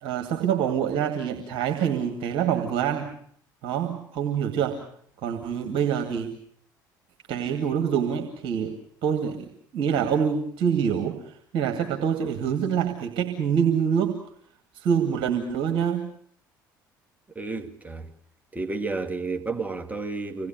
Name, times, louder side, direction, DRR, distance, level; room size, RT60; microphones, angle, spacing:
voice 1, 0.0-3.1 3.6-4.8 5.2-6.3 7.3-8.7 9.0-9.5 9.7-14.2 14.7-16.1, right 8 dB, 55° right, 2.4 m, -26 dB
voice 2, 17.3-18.1 18.5-20.5, right 3 dB, 15° right, 2.4 m, -31 dB
26.0 x 19.0 x 8.0 m
figure-of-eight pair, 60°, 10 cm